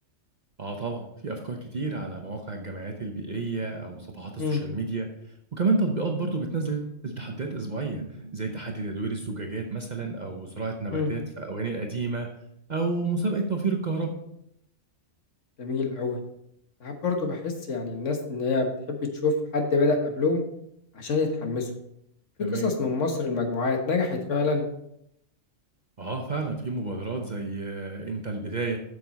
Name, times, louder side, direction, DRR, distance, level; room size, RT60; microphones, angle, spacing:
voice 1, 0.6-12.3 12.7-14.2 22.4-22.7 26.0-28.8, right 3 dB, 40° right, 2 dB, 0.9 m, -30 dB
voice 2, 15.6-16.2 16.8-20.4 20.9-21.7 22.5-24.7, left 3 dB, 85° left, 4 dB, 1.6 m, -26 dB
8.0 x 6.9 x 4.1 m, 0.77 s
omnidirectional pair, 1.2 m